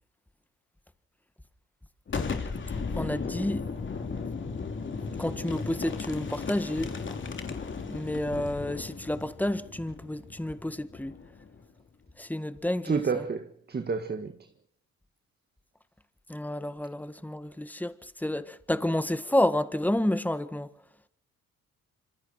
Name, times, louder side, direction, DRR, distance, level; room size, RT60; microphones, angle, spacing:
Boom, 2.1-11.6, left 4 dB, 40° left, 3.4 m, -36 dB
voice 1, 2.9-3.7 5.2-6.9 7.8-11.1 12.2-13.2 16.3-20.7, left 1 dB, 5° left, 1.6 m, -30 dB
voice 2, 12.8-14.3, right 5 dB, 35° right, 1.7 m, -30 dB
26.5 x 26.0 x 4.5 m
cardioid pair, 90°, 30 cm